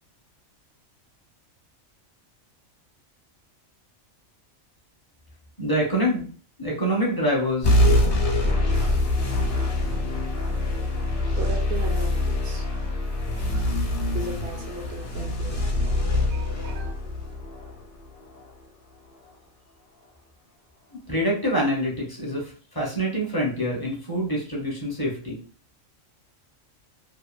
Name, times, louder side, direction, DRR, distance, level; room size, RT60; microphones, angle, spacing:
voice 1, 5.6-6.3 6.6-7.9 8.4-8.5 21.1-25.4, equal, 25° left, -3 dB, 0.6 m, -26 dB
sound 1, 7.6-18.5, left 1 dB, 50° left, 0.9 m, -24 dB
voice 2, 11.3-12.7 13.5-13.8 14.1-15.8 16.3-16.9, right 4 dB, 60° right, 3 dB, 0.7 m, -37 dB
2.7 x 2.3 x 2.4 m, 0.41 s
omnidirectional pair, 1.4 m